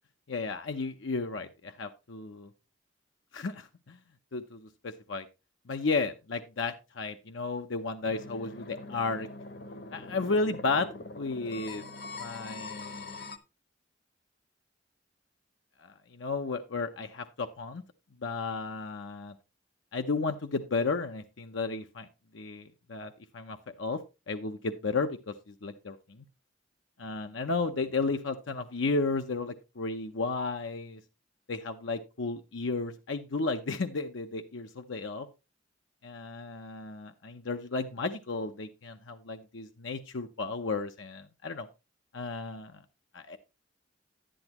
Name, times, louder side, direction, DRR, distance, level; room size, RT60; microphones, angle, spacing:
voice 1, 0.3-2.5 3.3-4.0 4.3-5.3 5.7-9.3 9.9-10.9 11.1-11.8 12.2-13.2 15.8-17.8 18.2-19.3 19.9-22.1 22.3-24.0 24.3-26.2 27.0-31.0 31.5-35.3 36.0-41.7 42.1-42.7 43.1-43.4, left 3 dB, 80° left, 6 dB, 0.7 m, -33 dB
sound 1, 8.0-13.4, left 3 dB, 55° left, 1.0 m, -43 dB
10.5 x 10.0 x 2.9 m, 0.27 s
head